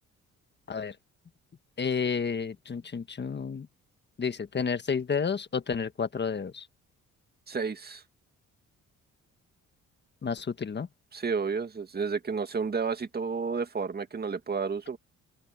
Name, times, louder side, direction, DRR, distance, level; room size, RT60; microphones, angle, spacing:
voice 1, 1.8-3.7 4.2-6.7 10.2-10.9, left 6 dB, 35° left, 1.6 m, -31 dB
voice 2, 7.5-8.0 11.1-15.0, right 5 dB, 30° right, 2.2 m, -31 dB
open air
cardioid pair, 90°, 30 cm